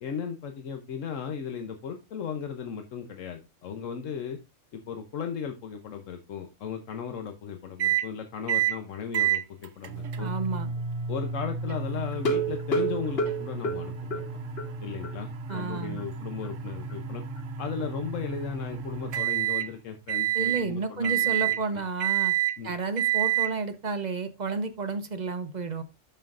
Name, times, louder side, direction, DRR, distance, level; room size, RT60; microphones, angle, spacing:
voice 1, 0.0-4.4 4.7-10.3 11.1-14.2 14.8-17.2 17.6-21.8 22.6-22.7, left 7 dB, 80° left, 5 dB, 1.2 m, -36 dB
sound 1, 7.8-8.1 8.5-8.8 9.1-19.7 20.1-20.6 21.0-21.6 22.0-22.6 23.0-23.5, right 10 dB, 85° right, 1.1 m, -30 dB
voice 2, 10.2-10.7 15.5-16.0 20.3-22.3 22.6-25.8, right 4 dB, 40° right, 9 dB, 0.8 m, -31 dB
sound 2, 12.1-14.7 15.0-15.1 15.5-15.6 16.0-16.1, right 2 dB, 55° left, 1.3 m, -29 dB
12.0 x 5.6 x 2.5 m, 0.25 s
omnidirectional pair, 1.3 m